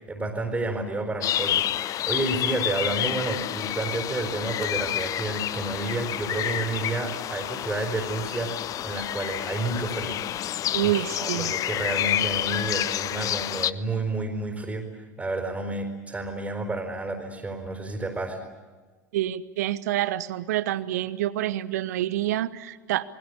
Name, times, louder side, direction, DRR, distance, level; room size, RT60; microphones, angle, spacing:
voice 1, 0.1-10.2 10.8-18.4, right 2 dB, 15° right, 3 dB, 4.6 m, -30 dB
sound 1, 1.2-13.7, left 12 dB, 35° left, 0.7 m, -29 dB
voice 2, 10.7-11.5 19.1-23.0, right 13 dB, 65° right, 17 dB, 1.0 m, -27 dB
28.5 x 21.0 x 8.4 m, 1.3 s
figure-of-eight pair, 75°, 10 cm